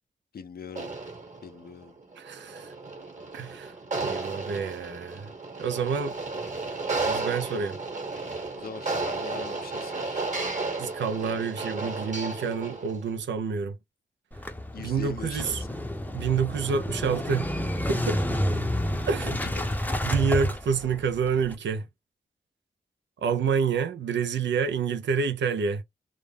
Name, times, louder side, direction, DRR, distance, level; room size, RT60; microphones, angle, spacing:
voice 1, 0.3-1.0 1.4-2.0 8.6-10.3 14.7-15.9 19.3-19.8, left 6 dB, 55° left, 0.5 m, -41 dB
sound 1, 0.7-13.0, right 3 dB, 45° right, 1.2 m, -33 dB
voice 2, 2.2-2.7 3.3-5.3 5.6-6.2 7.1-7.8 10.8-13.8 14.8-15.6 16.1-17.5 17.9-18.4 19.1-19.4 20.0-21.8 23.2-25.8, right 6 dB, 80° right, 0.5 m, -28 dB
Motorcycle / Engine starting, 14.3-21.5, left 1 dB, 10° left, 0.6 m, -30 dB
2.4 x 2.1 x 3.3 m
cardioid pair, 50°, 19 cm